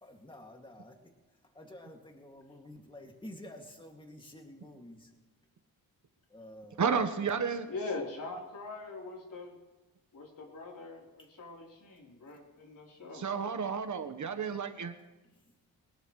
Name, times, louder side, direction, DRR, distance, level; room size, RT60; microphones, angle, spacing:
voice 1, 0.0-1.0 1.5-5.1 6.3-6.9, left 1 dB, 10° left, 2 dB, 2.2 m, -50 dB
voice 2, 6.8-7.7 13.1-14.9, right 6 dB, 50° right, 9 dB, 1.2 m, -31 dB
voice 3, 7.7-9.6 10.1-13.2, left 3 dB, 55° left, -1 dB, 3.7 m, -42 dB
22.5 x 18.5 x 3.2 m, 1.1 s
cardioid pair, 100°, 39 cm